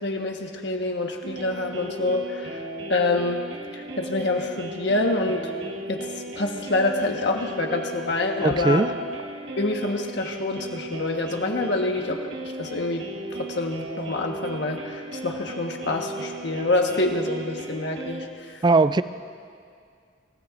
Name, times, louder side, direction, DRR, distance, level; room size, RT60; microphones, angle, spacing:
voice 1, 0.0-2.6 2.9-3.4 3.8-5.4 5.9-6.1 6.4-8.9 9.6-13.1 13.4-18.6, left 2 dB, 65° left, 2 dB, 1.4 m, -26 dB
sound 1, 1.2-18.3, right 1 dB, 70° right, 1.5 m, -36 dB
voice 2, 8.4-8.9 18.6-19.0, right 3 dB, 25° right, 13 dB, 0.3 m, -19 dB
27.0 x 17.0 x 2.6 m, 2.2 s
head